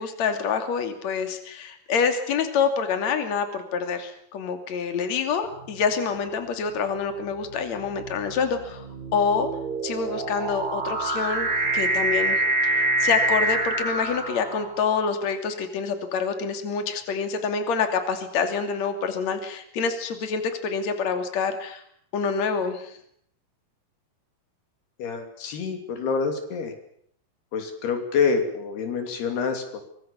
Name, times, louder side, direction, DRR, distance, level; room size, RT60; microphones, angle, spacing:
voice 1, 0.0-8.8 9.1-9.5 9.8-21.8 22.1-23.0, left 6 dB, 45° left, 7 dB, 3.7 m, -27 dB
sound 1, 5.5-5.9 6.8-15.0, right 2 dB, 35° right, 0.8 m, -26 dB
voice 2, 25.0-26.7 27.5-29.8, left 5 dB, 85° left, 6 dB, 5.0 m, -27 dB
24.5 x 22.5 x 7.2 m, 0.67 s
omnidirectional pair, 4.5 m